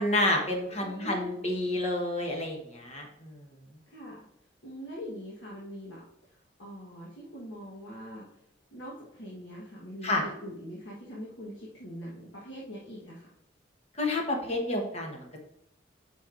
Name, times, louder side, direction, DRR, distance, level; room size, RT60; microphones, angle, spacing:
voice 1, 0.0-3.4 10.0-10.2 13.9-15.4, left 1 dB, 35° left, 1 dB, 1.1 m, -29 dB
voice 2, 0.7-1.4 3.9-4.2 4.6-6.0 6.6-8.3 8.7-13.3, equal, 75° left, -5 dB, 1.2 m, -42 dB
7.6 x 5.2 x 2.5 m, 0.77 s
head